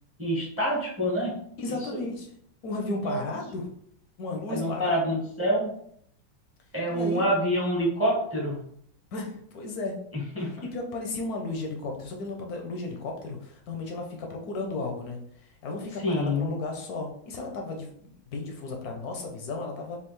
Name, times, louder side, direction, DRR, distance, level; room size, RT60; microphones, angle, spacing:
voice 1, 0.2-1.4 1.7-2.0 3.0-3.3 4.5-5.7 6.7-8.6 10.1-10.5 16.0-16.5, equal, 15° right, -4 dB, 0.4 m, -27 dB
voice 2, 1.6-2.3 2.6-3.7 4.2-5.0 6.9-7.2 9.1-10.0 10.6-20.0, left 3 dB, 70° left, 2 dB, 0.9 m, -34 dB
5.5 x 2.4 x 3.1 m, 0.67 s
omnidirectional pair, 2.3 m